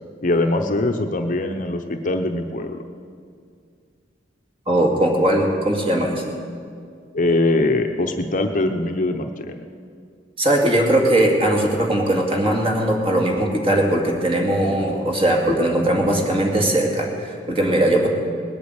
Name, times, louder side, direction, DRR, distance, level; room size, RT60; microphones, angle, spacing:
voice 1, 0.2-2.8 7.1-9.6, left 2 dB, 45° left, 6 dB, 0.8 m, -22 dB
voice 2, 4.7-6.3 10.4-18.1, right 1 dB, 30° right, 0 dB, 2.2 m, -19 dB
19.5 x 8.5 x 8.0 m, 2.2 s
head